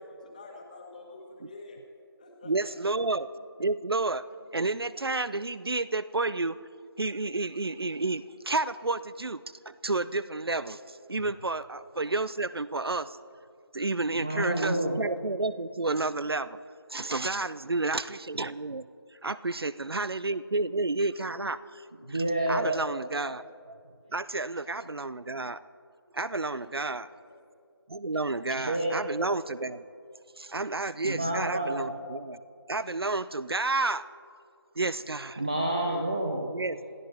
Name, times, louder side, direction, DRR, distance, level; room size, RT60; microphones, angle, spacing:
voice 1, 0.0-1.8 2.2-3.0 27.1-27.4, left 2 dB, 20° left, 1 dB, 1.6 m, -48 dB
voice 2, 2.4-3.3 3.6-4.2 4.5-6.6 7.0-13.2 13.7-16.6 16.9-18.8 19.2-23.8 24.1-25.6 26.1-27.1 27.9-29.8 30.4-32.4 32.7-34.1 34.8-35.4 36.5-36.8, right 3 dB, 70° right, 17 dB, 0.6 m, -31 dB
voice 3, 14.1-15.0 22.0-22.7 28.5-29.0 31.0-31.9 35.4-36.5, right 1 dB, 15° right, 1 dB, 0.5 m, -29 dB
27.5 x 12.5 x 3.3 m, 2.3 s
figure-of-eight pair, 165°, 13 cm